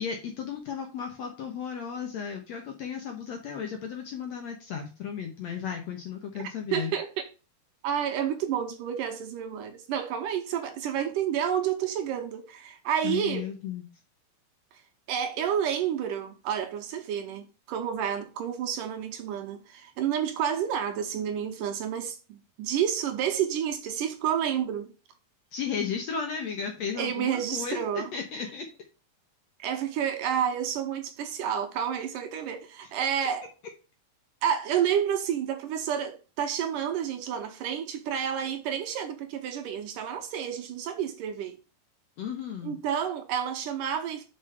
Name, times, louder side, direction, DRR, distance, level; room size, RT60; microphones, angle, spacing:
voice 1, 0.0-6.9 13.0-13.8 25.5-28.7 42.2-42.8, left 7 dB, 65° left, 1.9 m, -34 dB
voice 2, 6.7-7.1 7.8-13.5 15.1-24.9 27.0-28.1 29.6-33.5 34.4-41.6 42.6-44.2, right 9 dB, 75° right, 2.3 m, -30 dB
6.1 x 5.3 x 5.5 m
omnidirectional pair, 4.2 m